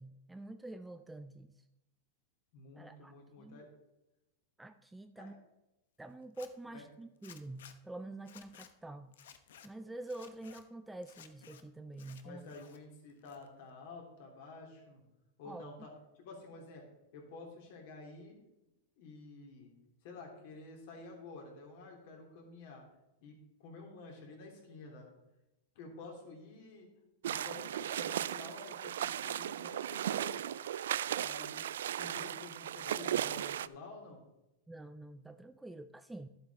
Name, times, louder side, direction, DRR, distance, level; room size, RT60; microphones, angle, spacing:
voice 1, 0.0-1.6 2.7-3.6 4.6-5.4 6.0-9.1 9.6-12.5 15.4-15.9 34.7-36.3, right 2 dB, 5° right, 9 dB, 0.3 m, -47 dB
voice 2, 2.5-3.7 5.2-5.4 6.7-6.8 12.2-15.0 15.4-15.9 16.2-16.8 17.1-18.4 19.0-19.7 20.0-22.8 23.2-25.1 25.7-26.9 27.3-30.4 31.2-34.2, left 3 dB, 55° left, 1 dB, 3.2 m, -50 dB
Zipper (clothing), 6.2-6.5 7.2-7.8 8.2-8.7 9.1-9.7 10.1-10.6 11.0-11.6 11.9-12.8 13.1-13.7, left 9 dB, 80° left, 0.9 m, -56 dB
sound 1, 27.2-33.7, right 11 dB, 90° right, 0.3 m, -36 dB
11.5 x 7.8 x 4.2 m, 0.93 s
supercardioid pair, 160°, 0 cm